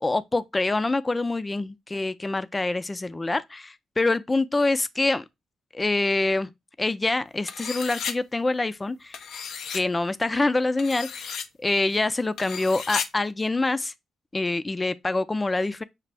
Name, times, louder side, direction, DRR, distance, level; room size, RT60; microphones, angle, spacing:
voice 1, 0.0-5.2 5.7-6.5 6.8-9.2 9.7-13.9 14.3-15.8, left 2 dB, 25° left, 0.4 m, -25 dB
sound 1, 7.5-8.1 9.1-9.8 10.8-11.5 12.4-13.1, left 6 dB, 75° left, 0.5 m, -33 dB
6.1 x 2.4 x 3.3 m
supercardioid pair, 55°, 0 cm